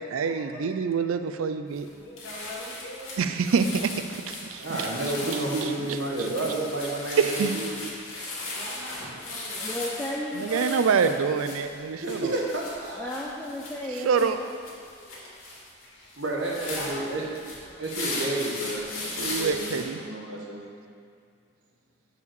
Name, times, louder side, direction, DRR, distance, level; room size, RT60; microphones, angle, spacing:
voice 1, 0.1-1.9 3.2-4.6 5.3-5.7 7.2-7.5 10.4-12.3 13.9-14.4 19.2-20.0, right 5 dB, 75° right, 9 dB, 0.4 m, -26 dB
sound 1, 1.7-1.9 2.2-19.8, left 2 dB, 75° left, 2.3 m, -37 dB
voice 2, 1.9-3.4 8.5-9.8 15.4-15.5 15.8-16.2 16.7-18.0 18.2-18.4, left 1 dB, 50° left, -6 dB, 2.1 m, -42 dB
voice 3, 4.6-7.8 12.0-13.2 16.2-17.2 17.8-20.7, right 2 dB, 60° right, -2 dB, 1.3 m, -31 dB
voice 4, 9.6-10.8 13.0-14.5 14.9-15.3, left 1 dB, 10° left, -4 dB, 0.5 m, -34 dB
6.7 x 5.0 x 6.9 m, 2.3 s
head